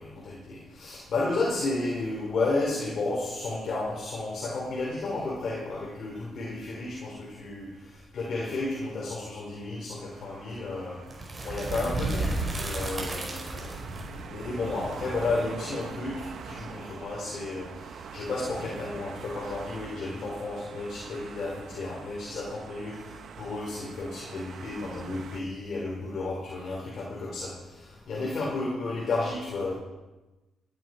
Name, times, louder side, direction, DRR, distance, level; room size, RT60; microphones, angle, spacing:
voice 1, 0.0-11.0 11.4-29.7, left 2 dB, 60° left, -4 dB, 4.4 m, -32 dB
sound 1, 10.2-25.4, right 6 dB, 65° right, 1.2 m, -44 dB
sound 2, 11.1-16.9, right 2 dB, 30° right, 5.0 m, -34 dB
16.5 x 11.0 x 4.7 m, 1.1 s
cardioid pair, 90°, 0 cm